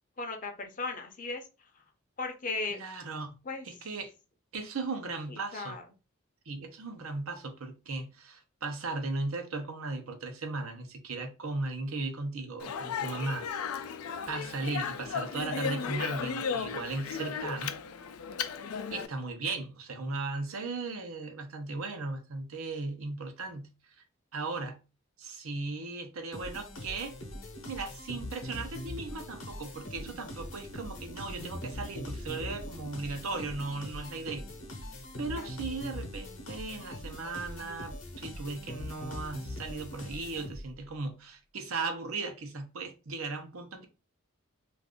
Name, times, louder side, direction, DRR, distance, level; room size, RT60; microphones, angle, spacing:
voice 1, 0.2-1.8 2.2-2.8 3.4-3.7 5.3-5.8 35.3-35.5, left 3 dB, 40° left, 0.6 m, -37 dB
voice 2, 2.7-3.3 3.6-4.1 4.5-5.8 6.5-13.5 14.3-17.8 18.9-23.7 24.3-24.8 25.2-27.1 27.7-34.5 35.2-43.8, right 3 dB, 75° right, 0.7 m, -37 dB
Speech, 12.6-19.1, left 6 dB, 85° left, 0.4 m, -35 dB
sound 1, 26.3-40.9, left 1 dB, 65° left, 0.8 m, -42 dB
sound 2, 29.7-35.7, right 3 dB, 35° right, 0.4 m, -53 dB
2.5 x 2.5 x 3.5 m
head